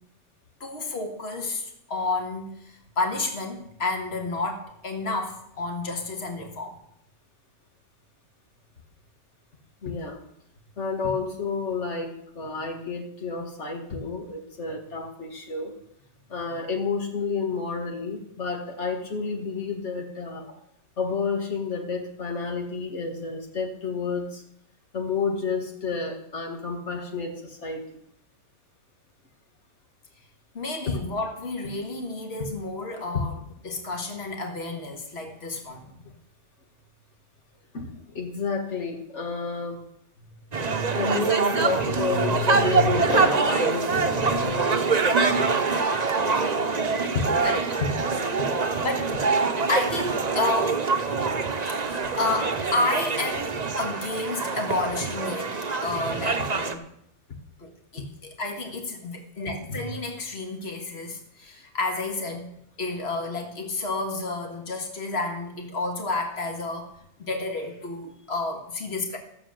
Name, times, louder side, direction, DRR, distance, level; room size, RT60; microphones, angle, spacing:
voice 1, 0.6-6.8 20.4-20.5 30.5-33.4 33.6-35.9 40.5-41.0 42.1-42.9 44.2-44.6 47.4-47.8 48.8-49.1 49.7-50.9 51.8-56.8 57.6-62.5 62.8-66.9 67.2-69.2, left 2 dB, 65° left, 3 dB, 2.0 m, -31 dB
voice 2, 9.8-10.2 10.8-15.8 16.3-20.5 21.0-24.4 24.9-28.0 30.9-31.0 33.1-33.2 36.0-36.1 37.7-39.8 40.9-45.7 47.1-47.2 48.4-48.5 56.1-56.5 57.3-57.4 58.0-58.1, left 4 dB, 80° left, 1 dB, 2.0 m, -30 dB
sound 1, 40.5-56.7, right 4 dB, 40° right, 1.0 m, -25 dB
14.5 x 7.2 x 7.7 m, 0.73 s
omnidirectional pair, 1.2 m